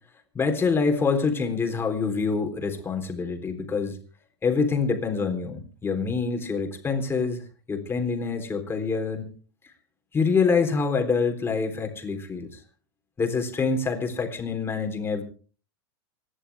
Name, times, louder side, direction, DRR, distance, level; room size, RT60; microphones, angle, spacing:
voice 1, 0.3-4.0 4.4-7.4 7.7-9.3 10.1-12.6 13.2-15.2, left 5 dB, 15° left, 5 dB, 3.7 m, -26 dB
26.0 x 11.5 x 3.5 m, 0.39 s
hypercardioid pair, 120°, 14 cm